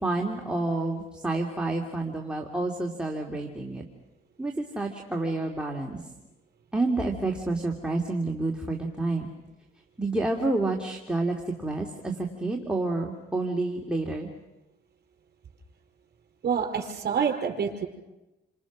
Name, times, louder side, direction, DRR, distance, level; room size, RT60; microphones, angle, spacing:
voice 1, 0.0-3.8 4.4-6.0 6.7-9.3 10.0-14.3, right 2 dB, 5° right, 0 dB, 2.8 m, -29 dB
voice 2, 16.4-17.9, right 7 dB, 55° right, 2 dB, 5.4 m, -27 dB
29.5 x 26.0 x 6.3 m, 1.0 s
cardioid pair, 90°, 20 cm